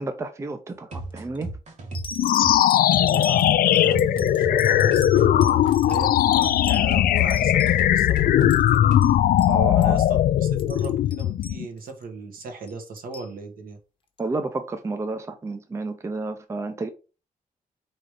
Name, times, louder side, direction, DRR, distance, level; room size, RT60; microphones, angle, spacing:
voice 1, 0.0-1.5 9.5-10.0 14.2-16.9, right 3 dB, 20° right, 0.6 m, -31 dB
sound 1, 0.9-9.1, right 2 dB, 55° right, 2.4 m, -35 dB
sound 2, 1.1-1.4 1.9-8.1 8.4-8.8 9.0-9.1 9.4-9.6 9.8-10.0 10.4-12.0 12.7-13.3 14.2-14.3, left 3 dB, 35° left, 1.0 m, -41 dB
sound 3, 2.1-11.6, left 12 dB, 90° left, 0.4 m, -19 dB
voice 2, 2.7-8.9 9.7-13.8, right 4 dB, 75° right, 1.8 m, -38 dB
5.0 x 4.3 x 4.9 m
wide cardioid pair, 175°, 15 cm